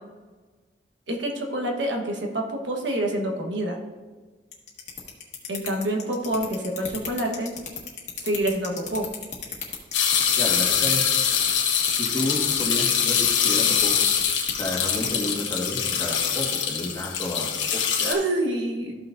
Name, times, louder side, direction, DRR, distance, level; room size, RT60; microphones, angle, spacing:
voice 1, 1.1-3.8 5.5-7.5 8.2-9.1 18.0-19.0, right 1 dB, 75° right, 1 dB, 1.3 m, -27 dB
sound 1, 4.5-15.1, left 7 dB, 40° left, 1.6 m, -32 dB
sound 2, 9.9-18.1, left 7 dB, 85° left, 1.2 m, -23 dB
voice 2, 10.3-11.0 12.0-14.0 14.6-17.8, left 1 dB, 15° left, -3 dB, 1.6 m, -31 dB
14.0 x 5.8 x 2.6 m, 1.4 s
head